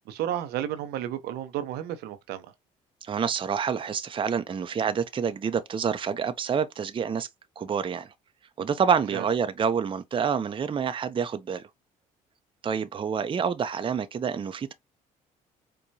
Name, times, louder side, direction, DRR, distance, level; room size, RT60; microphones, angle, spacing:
voice 1, 0.1-2.5 9.1-9.2, right 11 dB, 70° right, 0.6 m, -32 dB
voice 2, 3.0-7.3 7.6-8.1 8.6-11.6 12.6-14.7, right 6 dB, 30° right, 0.5 m, -27 dB
4.5 x 2.2 x 2.6 m
hypercardioid pair, 60°, 17 cm